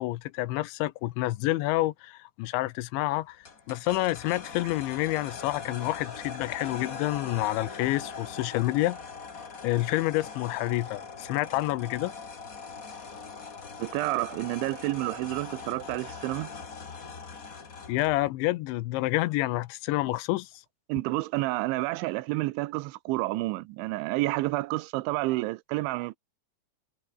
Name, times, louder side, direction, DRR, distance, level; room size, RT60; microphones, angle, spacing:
voice 1, 0.0-9.0 9.6-12.1 17.9-20.5, left 18 dB, 85° left, 3.2 m, -28 dB
sound 1, 3.4-18.3, left 5 dB, 50° left, 1.0 m, -41 dB
voice 2, 13.8-16.5 20.9-26.2, right 20 dB, 85° right, 3.2 m, -29 dB
omnidirectional pair, 5.3 m